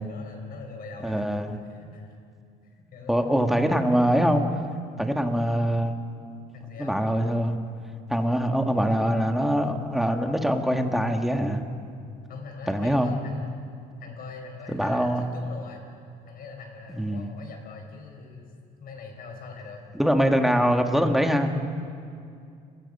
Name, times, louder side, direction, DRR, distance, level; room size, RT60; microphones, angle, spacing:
voice 1, 0.0-2.1 2.9-4.2 6.5-7.0 12.3-13.6 14.0-15.8 16.3-18.5 18.8-19.8 20.4-20.6, left 4 dB, 60° left, 3 dB, 5.2 m, -42 dB
voice 2, 1.0-1.5 3.1-4.4 5.0-5.9 6.8-7.6 8.1-11.6 12.7-13.1 14.7-15.2 16.9-17.3 19.9-21.5, equal, ahead, 4 dB, 1.9 m, -23 dB
29.5 x 20.5 x 5.6 m, 2.4 s
cardioid pair, 110°, 17 cm